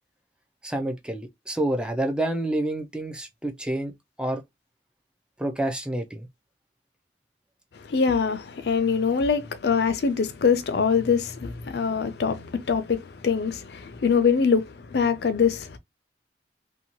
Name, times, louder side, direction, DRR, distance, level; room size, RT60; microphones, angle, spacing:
voice 1, 0.6-3.9 4.2-4.4 5.4-6.3, right 1 dB, 5° right, 0.3 m, -28 dB
voice 2, 7.8-15.8, left 6 dB, 60° left, 0.4 m, -24 dB
2.7 x 2.2 x 2.8 m
head